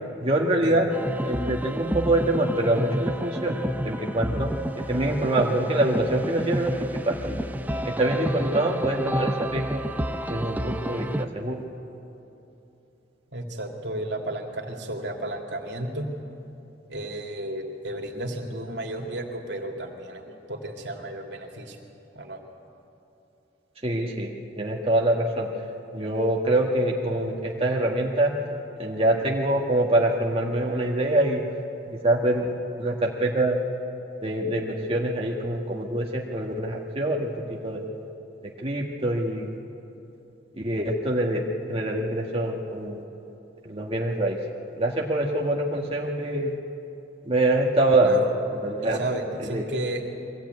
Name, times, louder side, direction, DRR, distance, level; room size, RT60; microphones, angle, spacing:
voice 1, 0.2-0.9 1.2-4.5 4.9-7.4 7.8-9.8 10.3-11.6 23.8-24.3 24.6-25.5 25.9-28.3 28.8-31.4 32.0-32.5 32.8-33.6 34.2-37.3 37.6-37.8 38.6-39.5 40.6-41.4 41.7-43.0 43.6-44.4 44.8-46.5 47.3-48.2 48.6-49.0 49.4-49.6, right 1 dB, 30° right, -1 dB, 1.4 m, -25 dB
sound 1, 0.9-11.2, equal, 10° right, 0.5 m, -30 dB
voice 2, 13.3-16.1 16.9-21.8 22.1-22.4 48.0-48.4 48.8-50.0, right 1 dB, 75° right, 1 dB, 2.7 m, -33 dB
22.5 x 16.0 x 9.4 m, 3.0 s
head